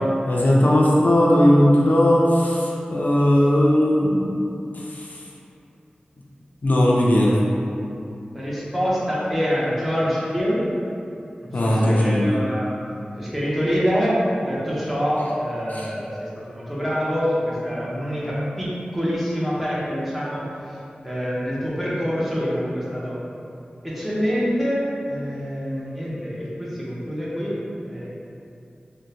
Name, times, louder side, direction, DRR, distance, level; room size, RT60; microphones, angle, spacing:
voice 1, 0.3-4.4 4.9-5.1 6.6-7.4 11.5-12.3 15.7-15.9, left 1 dB, 65° left, -4 dB, 0.4 m, -18 dB
voice 2, 8.3-10.7 11.4-12.7 13.2-23.2 23.8-28.1, equal, 5° right, -8 dB, 0.8 m, -26 dB
3.5 x 2.1 x 2.7 m, 2.7 s
wide cardioid pair, 60°, 3 cm